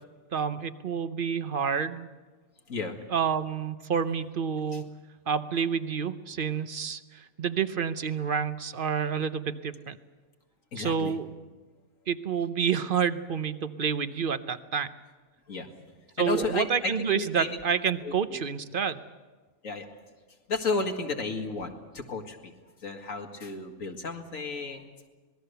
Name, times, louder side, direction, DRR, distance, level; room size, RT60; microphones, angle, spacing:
voice 1, 0.3-2.1 3.1-4.9 5.3-10.0 10.8-11.3 12.1-14.9 16.2-19.0, right 7 dB, 45° right, 12 dB, 0.9 m, -29 dB
voice 2, 10.7-11.1 15.5-15.7 16.2-17.6 18.0-18.4 19.6-19.9 20.5-22.5 22.8-24.9, left 3 dB, 90° left, 4 dB, 2.3 m, -33 dB
25.5 x 20.5 x 6.8 m, 1.4 s
omnidirectional pair, 1.3 m